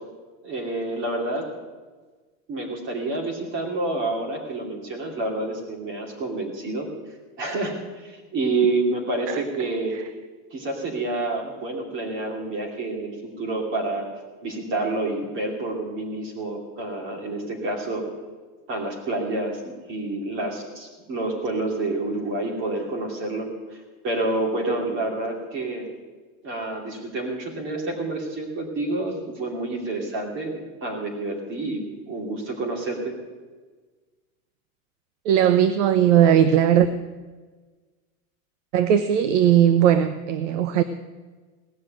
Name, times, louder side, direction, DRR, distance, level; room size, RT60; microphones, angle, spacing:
voice 1, 0.4-1.5 2.5-6.9 7.4-10.0 10.5-14.1 14.4-18.0 18.7-25.8 26.4-33.1, right 2 dB, 25° right, 1 dB, 2.7 m, -28 dB
voice 2, 35.2-36.9 38.7-40.8, right 10 dB, 55° right, 11 dB, 0.7 m, -18 dB
17.5 x 6.5 x 9.2 m, 1.4 s
supercardioid pair, 170°, 44 cm